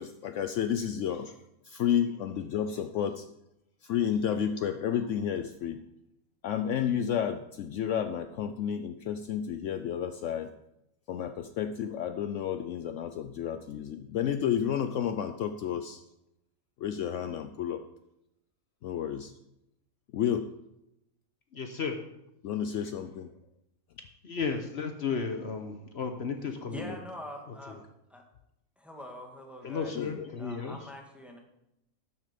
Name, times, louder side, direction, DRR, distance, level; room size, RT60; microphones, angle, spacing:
voice 1, 0.0-1.3 1.6-3.3 3.8-5.8 6.4-10.5 11.1-16.0 16.8-17.8 18.8-19.3 20.1-20.5 22.4-23.3 29.9-30.3, left 9 dB, 70° left, 9 dB, 0.9 m, -31 dB
voice 2, 21.5-22.0 24.2-27.0 27.7-27.8 29.6-30.8, left 5 dB, 55° left, 6 dB, 1.1 m, -34 dB
voice 3, 26.7-27.8 28.1-28.2 28.8-30.0 30.4-31.4, left 1 dB, ahead, 2 dB, 1.4 m, -43 dB
12.0 x 7.3 x 5.0 m, 0.84 s
omnidirectional pair, 1.4 m